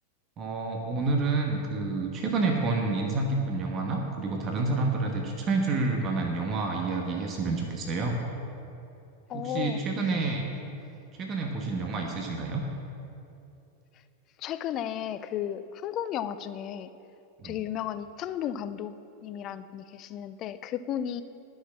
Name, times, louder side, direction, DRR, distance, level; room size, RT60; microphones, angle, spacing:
voice 1, 0.4-8.2 9.3-10.5 11.2-12.6 17.4-17.6, right 3 dB, 30° right, 1 dB, 1.2 m, -29 dB
voice 2, 9.3-9.8 14.4-16.9 17.4-18.9 19.2-21.2, left 10 dB, 35° left, 13 dB, 0.4 m, -34 dB
11.5 x 6.5 x 7.1 m, 2.8 s
figure-of-eight pair, 90°, 0 cm